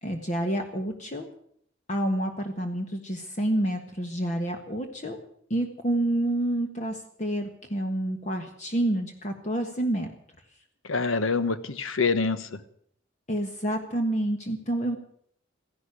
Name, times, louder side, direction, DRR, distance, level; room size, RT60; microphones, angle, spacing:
voice 1, 0.0-1.3 1.9-5.2 5.5-10.1 13.3-15.0, right 1 dB, 35° left, 4 dB, 1.4 m, -28 dB
voice 2, 10.9-12.6, left 4 dB, 85° left, 12 dB, 1.2 m, -26 dB
15.0 x 11.5 x 8.2 m, 0.64 s
head